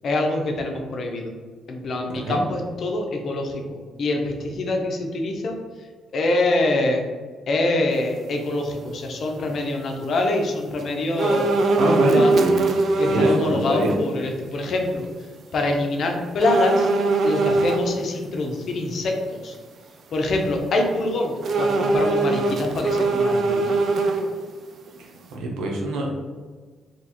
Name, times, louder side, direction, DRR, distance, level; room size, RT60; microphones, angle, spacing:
voice 1, 0.0-1.3 1.7-5.6 6.1-7.0 7.5-11.5 12.1-12.3 13.0-15.1 15.5-16.9 17.2-19.5 20.1-23.8, left 2 dB, 55° left, 2 dB, 0.6 m, -25 dB
sound 1, 11.2-13.5 13.9-14.0 16.4-17.8 21.4-24.5 24.9-25.0, right 2 dB, 60° right, 0.4 m, -21 dB
voice 2, 11.8-12.6 13.0-13.9 25.0-26.2, right 1 dB, 85° right, 0 dB, 0.7 m, -24 dB
2.9 x 2.3 x 4.2 m, 1.4 s
cardioid pair, 90°, 0 cm